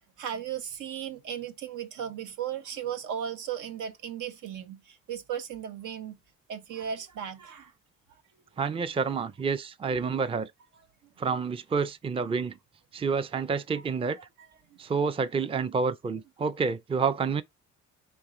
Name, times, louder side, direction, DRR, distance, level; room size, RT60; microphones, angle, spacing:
voice 1, 0.2-6.2 6.5-7.7 13.9-14.0, right 9 dB, 80° right, 0.9 m, -36 dB
voice 2, 8.6-10.5 11.2-12.6 12.9-14.2 14.8-17.4, right 5 dB, 20° right, 0.4 m, -28 dB
4.6 x 3.1 x 3.7 m
cardioid pair, 90°, 30 cm